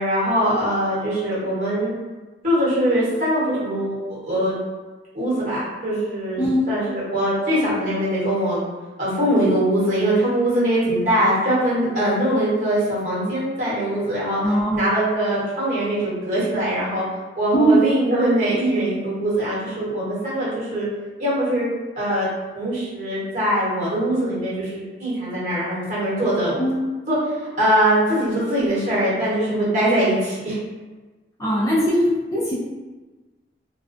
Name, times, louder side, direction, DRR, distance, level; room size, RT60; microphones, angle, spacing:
voice 1, 0.0-1.9 2.4-4.5 5.1-8.6 9.0-14.4 14.7-17.1 17.3-20.9 21.2-21.7 22.0-22.3 22.5-26.5 27.1-27.2 27.6-30.6, right 1 dB, 45° right, -8 dB, 1.1 m, -22 dB
voice 2, 14.4-14.8 17.5-17.8 26.6-26.8 31.4-32.5, right 1 dB, 20° left, -7 dB, 0.4 m, -19 dB
2.4 x 2.2 x 2.5 m, 1.2 s
head